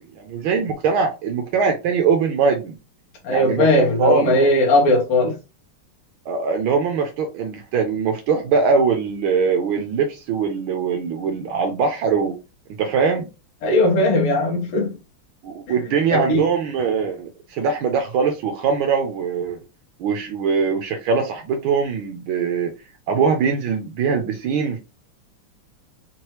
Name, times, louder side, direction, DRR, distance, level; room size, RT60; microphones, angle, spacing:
voice 1, 0.2-2.8 3.3-4.4 6.3-12.4 12.8-13.3 15.4-19.6 20.0-22.7 23.1-24.8, right 5 dB, 75° right, 1.4 m, -22 dB
voice 2, 3.2-5.4 13.6-14.9 16.1-16.4, left 1 dB, 90° left, 1.9 m, -18 dB
4.5 x 3.1 x 3.0 m
omnidirectional pair, 2.4 m